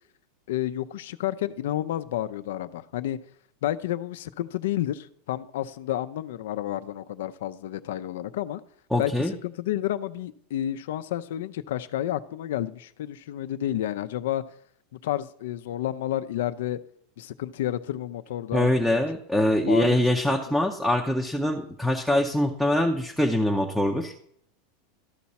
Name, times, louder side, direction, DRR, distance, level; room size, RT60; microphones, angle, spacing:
voice 1, 0.5-3.2 3.6-8.6 9.0-14.4 14.9-16.8 17.2-19.0 19.3-20.4, left 12 dB, 75° left, 12 dB, 0.5 m, -30 dB
voice 2, 8.9-9.3 18.5-24.1, left 1 dB, ahead, 2 dB, 0.6 m, -23 dB
13.0 x 5.8 x 4.2 m, 0.68 s
supercardioid pair, 160°, 0 cm